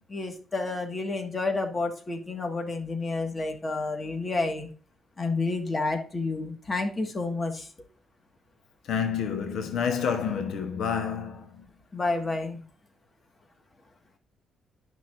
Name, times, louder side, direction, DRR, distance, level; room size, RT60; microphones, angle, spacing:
voice 1, 0.1-4.7 5.2-7.7 11.9-12.6, left 3 dB, 30° left, 1.8 m, -30 dB
voice 2, 8.9-11.6, left 7 dB, 80° left, 1.0 m, -29 dB
11.0 x 6.3 x 2.6 m
cardioid pair, 110°, 0 cm